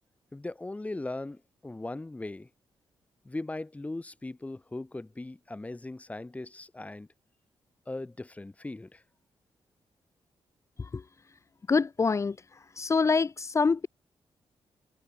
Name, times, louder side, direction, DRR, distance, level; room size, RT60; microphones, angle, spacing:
voice 1, 0.3-2.5 3.2-7.1 7.9-9.0, left 2 dB, 15° left, 8.0 m, -39 dB
voice 2, 11.7-12.4 12.8-13.9, left 4 dB, 30° left, 1.4 m, -25 dB
wide cardioid pair, 150°, 10 cm